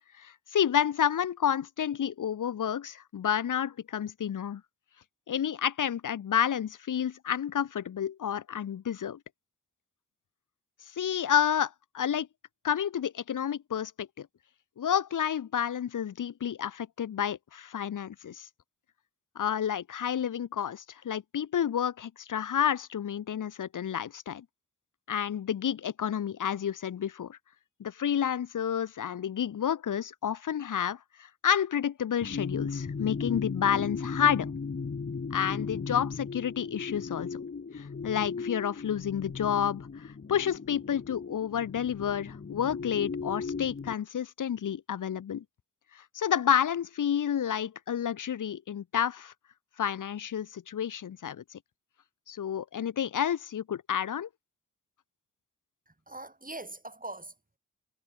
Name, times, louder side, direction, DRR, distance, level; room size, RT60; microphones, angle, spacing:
voice 1, 0.2-4.6 5.3-9.2 11.0-12.3 12.6-14.3 14.8-18.5 19.4-24.4 25.1-27.4 27.8-34.5 35.3-37.5 37.7-45.4 45.9-49.3 49.8-51.6 52.3-54.3, left 9 dB, 70° left, 1.0 m, -30 dB
sound 1, 32.2-43.9, left 5 dB, 40° left, 1.3 m, -37 dB
voice 2, 56.1-57.6, right 2 dB, 25° right, 5.0 m, -42 dB
cardioid pair, 45°, 32 cm